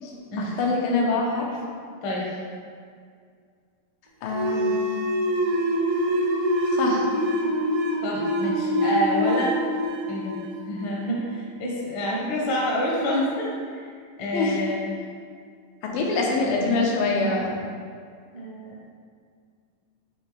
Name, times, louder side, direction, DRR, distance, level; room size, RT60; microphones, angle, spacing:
voice 1, 0.0-1.6 4.2-4.7 6.7-7.1 14.3-14.6 15.8-17.5, left 3 dB, 85° left, -1 dB, 2.6 m, -25 dB
sound 1, 4.3-11.5, equal, 90° right, 2.8 m, -25 dB
voice 2, 8.0-9.6 10.1-10.4 10.6-14.9 16.3-16.4 18.3-18.8, equal, 70° left, -4 dB, 1.2 m, -28 dB
9.8 x 3.3 x 3.2 m, 2.1 s
omnidirectional pair, 4.0 m